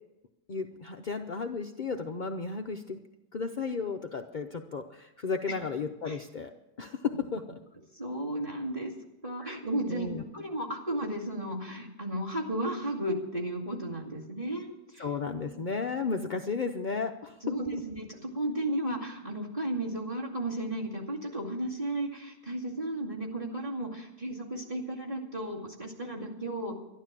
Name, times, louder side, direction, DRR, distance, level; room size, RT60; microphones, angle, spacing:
voice 1, 0.5-3.0 3.3-6.5 6.8-7.4 9.4-9.6 9.9-10.2 15.0-17.4 17.7-17.8, left 5 dB, 65° left, 4 dB, 0.4 m, -34 dB
voice 2, 7.9-8.9 9.2-15.1 17.4-26.7, right 1 dB, 20° right, 0 dB, 2.3 m, -34 dB
12.0 x 12.0 x 7.4 m, 0.95 s
omnidirectional pair, 1.8 m